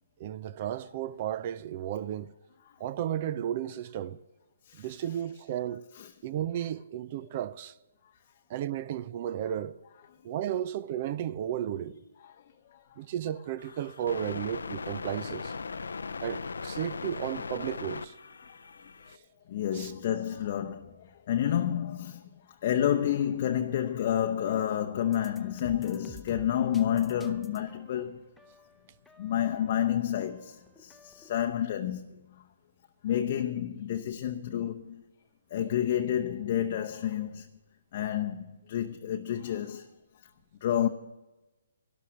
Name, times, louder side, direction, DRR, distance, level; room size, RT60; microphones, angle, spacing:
voice 1, 0.2-2.3 2.8-4.2 4.8-5.8 6.2-7.8 8.5-9.8 10.2-12.0 13.0-15.5 16.2-18.1 19.7-19.9, right 11 dB, 35° right, 0.5 m, -33 dB
sound 1, 13.6-19.2, left 4 dB, 85° left, 0.6 m, -39 dB
voice 2, 19.5-20.9 21.3-22.2 22.6-28.2 29.2-30.6 30.8-32.0 33.0-35.0 35.5-37.5 37.9-39.9 40.6-40.9, left 10 dB, 40° left, 0.7 m, -29 dB
sound 2, 25.0-31.5, equal, ahead, 0.8 m, -52 dB
12.5 x 12.0 x 6.3 m
hypercardioid pair, 155°, 0 cm